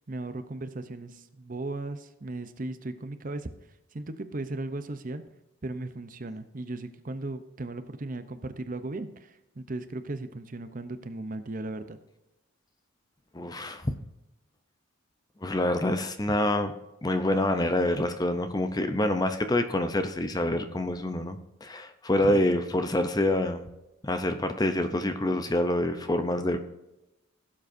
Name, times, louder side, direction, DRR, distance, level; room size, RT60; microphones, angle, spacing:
voice 1, 0.1-3.5 3.9-5.2 5.6-12.0 22.3-22.4, right 2 dB, 40° right, 10 dB, 0.6 m, -36 dB
voice 2, 13.3-13.9 15.4-16.7 17.0-23.7 24.0-26.6, left 1 dB, 20° left, 8 dB, 0.6 m, -26 dB
16.5 x 7.5 x 2.6 m, 0.94 s
head